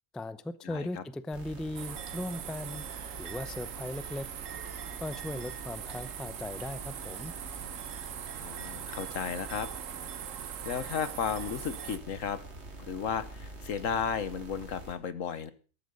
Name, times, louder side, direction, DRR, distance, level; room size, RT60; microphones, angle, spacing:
voice 1, 0.1-2.8 3.2-4.3 5.0-7.3, left 1 dB, ahead, 14 dB, 0.4 m, -38 dB
sound 1, 1.3-15.0, right 2 dB, 55° right, 2.8 m, -46 dB
sound 2, 1.7-12.0, right 9 dB, 75° right, 1.2 m, -41 dB
sound 3, 2.3-9.1, equal, 25° left, 5.2 m, -63 dB
voice 2, 8.4-9.7 10.6-12.4 12.8-15.5, left 7 dB, 75° left, 14 dB, 1.5 m, -34 dB
14.5 x 12.5 x 5.3 m, 0.38 s
omnidirectional pair, 1.4 m